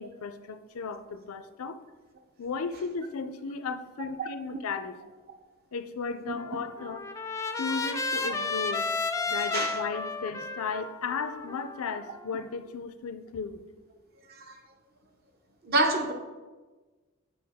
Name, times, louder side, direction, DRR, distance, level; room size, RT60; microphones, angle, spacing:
voice 1, 0.0-1.8 2.4-5.0 5.7-7.0 7.6-8.9 9.3-13.6, left 5 dB, 90° left, 11 dB, 0.5 m, -35 dB
Trumpet, 6.4-12.5, left 3 dB, 15° left, 0.3 m, -33 dB
voice 2, 15.6-16.1, right 2 dB, 45° right, 5 dB, 0.6 m, -26 dB
7.8 x 4.8 x 3.5 m, 1.3 s
head